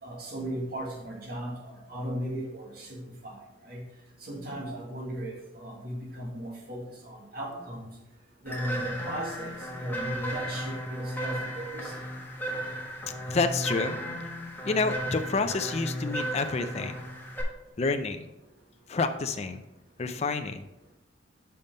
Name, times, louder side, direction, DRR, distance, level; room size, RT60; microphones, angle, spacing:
voice 1, 0.0-3.8 4.2-7.9 8.4-9.5 9.8-11.9, right 1 dB, 55° right, -1 dB, 1.8 m, -37 dB
sound 1, 8.5-17.4, equal, 10° left, 1.3 m, -35 dB
voice 2, 13.3-14.0 14.6-17.0 17.8-18.3 18.9-19.6 20.0-20.7, left 3 dB, 35° left, 7 dB, 0.4 m, -28 dB
5.6 x 5.3 x 5.2 m, 0.92 s
head